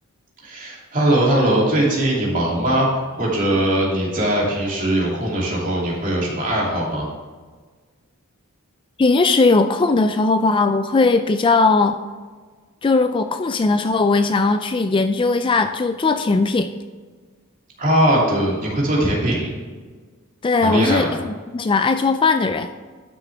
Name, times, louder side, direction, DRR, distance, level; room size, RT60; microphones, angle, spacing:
voice 1, 0.4-7.0 17.8-19.5 20.6-21.1, right 1 dB, 40° right, -4 dB, 2.8 m, -20 dB
voice 2, 9.0-12.0 12.8-16.7 20.4-21.3 21.5-22.7, left 3 dB, 25° left, 9 dB, 0.3 m, -18 dB
12.0 x 6.9 x 3.5 m, 1.5 s
head